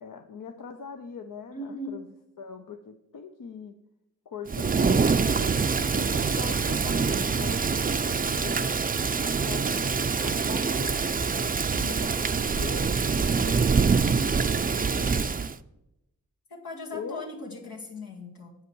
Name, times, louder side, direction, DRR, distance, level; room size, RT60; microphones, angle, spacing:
voice 1, 0.0-3.7 4.3-5.6 5.9-8.6 9.1-11.0 11.8-15.1 16.9-17.3, left 6 dB, 70° left, 6 dB, 0.7 m, -42 dB
voice 2, 1.5-2.0 11.7-12.0 16.5-18.6, left 2 dB, 85° left, -2 dB, 2.0 m, -38 dB
Thunder / Rain, 4.5-15.6, right 5 dB, 25° right, 0.4 m, -25 dB
7.8 x 5.6 x 6.2 m, 0.89 s
cardioid pair, 40°, 34 cm